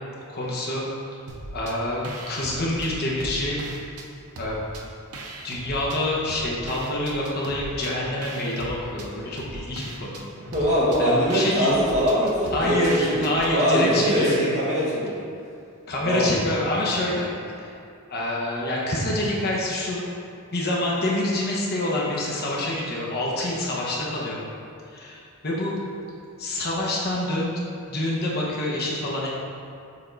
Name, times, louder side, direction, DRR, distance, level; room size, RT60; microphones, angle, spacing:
voice 1, 0.3-0.8 1.5-3.6 4.4-4.6 5.4-10.3 11.0-11.7 12.5-14.3 15.9-17.3 17.6-17.7 18.1-20.0 20.5-24.4 24.9-25.8 26.4-27.6 27.9-29.3, left 1 dB, 45° left, -5 dB, 0.9 m, -26 dB
sound 1, 1.3-1.8 2.0-4.1 4.4-6.0 6.3-13.5, right 2 dB, 85° right, 0.7 m, -39 dB
voice 2, 10.5-13.2 13.5-15.2 16.0-16.3, equal, 30° right, -8 dB, 1.3 m, -22 dB
6.8 x 3.6 x 3.9 m, 2.4 s
head